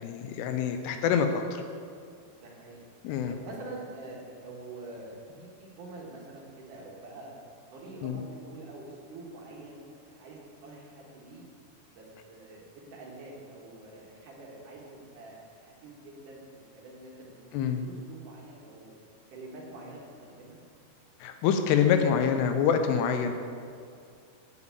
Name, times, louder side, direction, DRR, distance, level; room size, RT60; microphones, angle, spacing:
voice 1, 0.0-1.6 3.0-3.3 8.0-8.2 17.5-17.8 21.2-23.3, left 7 dB, 85° left, 6 dB, 2.6 m, -26 dB
voice 2, 2.3-2.9 3.3-7.3 7.7-11.4 11.9-18.9 19.3-20.6, right 2 dB, 60° right, -2 dB, 2.6 m, -46 dB
7.1 x 6.9 x 8.1 m, 2.3 s
omnidirectional pair, 4.8 m